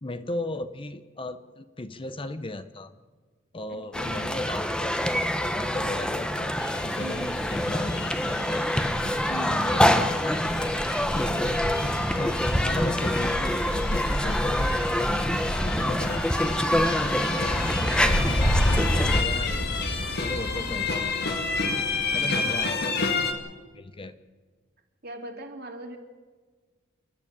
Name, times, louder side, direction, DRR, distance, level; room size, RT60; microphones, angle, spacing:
voice 1, 0.0-2.9 3.5-5.0 5.4-6.5 6.8-8.7 9.4-10.4 11.2-11.6 12.0-15.3 15.6-17.5 17.9-19.6 20.2-21.5 22.1-23.3 23.7-24.1, left 2 dB, 25° left, 11 dB, 0.7 m, -36 dB
voice 2, 3.7-4.4 7.0-7.3 9.3-10.1 20.5-20.8 22.4-22.7 25.0-26.0, right 1 dB, 50° right, 3 dB, 2.7 m, -40 dB
sound 1, 3.9-19.2, equal, 5° left, 1.0 m, -26 dB
sound 2, 6.6-23.3, left 2 dB, 55° left, 2.0 m, -29 dB
sound 3, 17.4-22.3, left 1 dB, 75° left, 2.6 m, -34 dB
28.0 x 11.5 x 8.7 m, 1.4 s
head